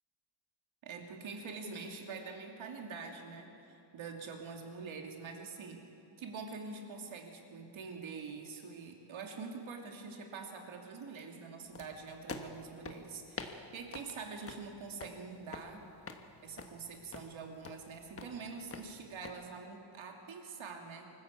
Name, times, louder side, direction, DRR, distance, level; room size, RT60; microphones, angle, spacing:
voice 1, 0.8-5.8 6.2-15.9 16.4-21.1, right 4 dB, 85° right, 2 dB, 2.7 m, -45 dB
sound 1, 11.7-19.3, left 4 dB, 30° left, 1.3 m, -48 dB
24.5 x 14.5 x 8.4 m, 2.8 s
wide cardioid pair, 170°, 46 cm